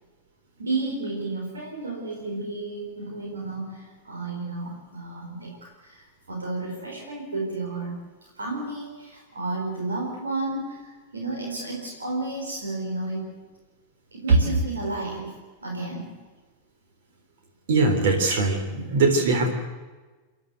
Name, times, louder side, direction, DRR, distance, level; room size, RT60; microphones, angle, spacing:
voice 1, 0.6-8.0 8.4-13.5 14.1-16.2 19.2-19.4, right 2 dB, 75° right, 0 dB, 4.1 m, -32 dB
voice 2, 17.7-19.5, right 3 dB, 55° right, 5 dB, 3.7 m, -20 dB
30.0 x 10.5 x 8.0 m, 1.3 s
figure-of-eight pair, 90°, 0 cm